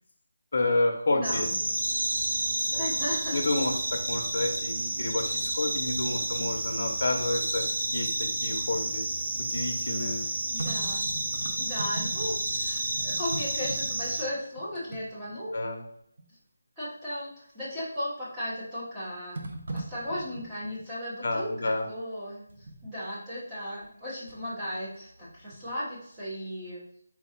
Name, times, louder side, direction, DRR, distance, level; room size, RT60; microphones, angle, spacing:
voice 1, 0.5-1.5 2.7-2.8 3.3-9.0 9.4-10.2 15.5-15.8 21.2-21.9, left 2 dB, 45° left, 2 dB, 0.7 m, -29 dB
voice 2, 1.1-1.5 2.7-3.4 10.2-11.0 11.5-15.5 16.3-16.4 16.8-19.4 19.7-26.8, left 1 dB, 5° right, -10 dB, 0.9 m, -36 dB
sound 1, 1.2-14.2, right 1 dB, 75° right, 0.9 m, -30 dB
sound 2, 8.4-12.6 12.8-15.6 16.2-16.3 17.9-18.4 19.3-20.9 22.5-22.9 23.8-24.5 24.9-25.9 26.2-26.3, right 2 dB, 45° right, 0.6 m, -41 dB
4.6 x 2.3 x 4.3 m, 0.69 s
figure-of-eight pair, 180°, 0 cm